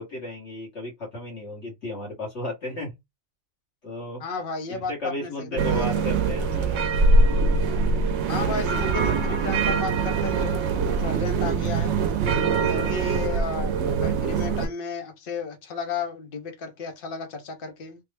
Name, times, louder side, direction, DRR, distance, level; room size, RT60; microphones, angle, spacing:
voice 1, 0.0-3.0 3.8-4.2 4.7-6.8 12.4-13.0, left 1 dB, 70° left, 1.6 m, -34 dB
voice 2, 4.2-6.1 8.3-12.0 12.6-13.7 14.0-18.0, left 4 dB, 55° left, 0.9 m, -33 dB
sound 1, 5.6-14.7, right 4 dB, 70° right, 0.9 m, -23 dB
3.3 x 2.0 x 3.3 m
omnidirectional pair, 1.2 m